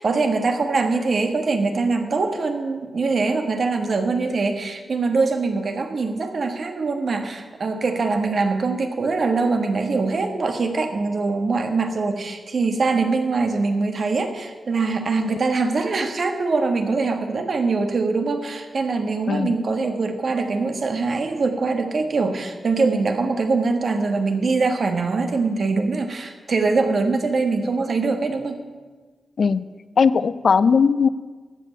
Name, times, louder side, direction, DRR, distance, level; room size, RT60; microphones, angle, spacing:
voice 1, 0.0-28.6, right 3 dB, 60° right, 5 dB, 1.4 m, -23 dB
voice 2, 29.4-29.7 30.0-31.1, left 5 dB, 65° left, 15 dB, 0.4 m, -18 dB
13.5 x 5.7 x 8.3 m, 1.4 s
cardioid pair, 80°, 0 cm